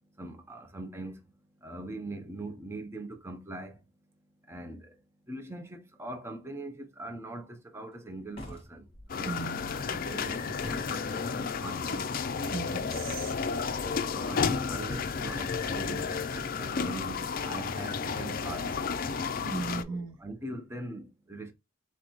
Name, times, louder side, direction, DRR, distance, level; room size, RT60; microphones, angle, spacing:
voice 1, 0.2-1.2 1.6-3.8 4.5-12.0 14.1-18.8 19.7-21.5, right 1 dB, 15° right, 0.7 m, -42 dB
sound 1, 8.3-9.1 10.6-11.1, left 1 dB, 30° left, 1.8 m, -44 dB
sound 2, 9.1-19.8, left 5 dB, 45° left, 0.5 m, -32 dB
voice 2, 9.2-9.8 12.5-13.3 19.4-20.2, right 3 dB, 75° right, 0.9 m, -37 dB
4.3 x 3.9 x 3.0 m
head